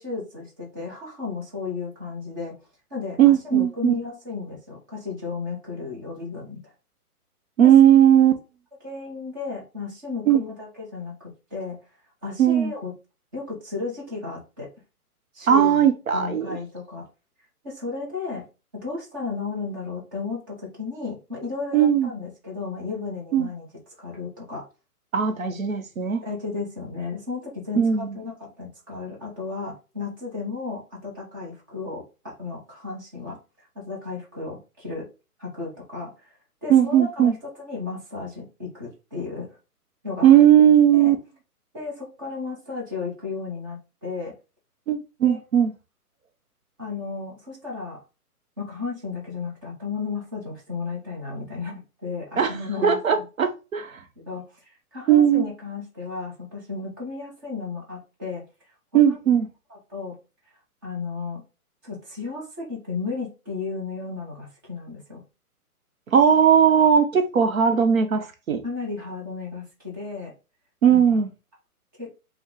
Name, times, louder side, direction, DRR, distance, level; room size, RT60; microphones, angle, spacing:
voice 1, 0.0-2.5 2.9-6.7 7.6-7.7 8.8-11.8 12.2-12.9 13.3-14.7 15.3-15.9 16.1-17.0 17.6-18.4 18.7-23.7 24.0-24.6 26.2-35.1 35.4-36.3 36.6-39.5 40.0-40.5 40.9-41.1 41.7-44.3 45.2-45.4 46.8-48.0 48.6-53.2 54.3-54.4 54.9-58.4 59.9-60.1 60.8-61.4 61.8-65.2 68.6-70.3 70.9-71.2 72.0-72.1, left 4 dB, 15° right, 0.9 m, -34 dB
voice 2, 3.2-4.0 7.6-8.4 10.3-10.4 12.4-12.7 15.5-16.6 21.7-22.1 23.3-23.5 25.1-26.2 27.7-28.1 36.7-37.3 40.2-41.2 44.9-45.7 52.4-54.0 55.1-55.5 58.9-59.5 66.1-68.6 70.8-71.3, right 9 dB, 60° right, 0.9 m, -18 dB
5.4 x 2.3 x 3.8 m
hypercardioid pair, 170°, 46 cm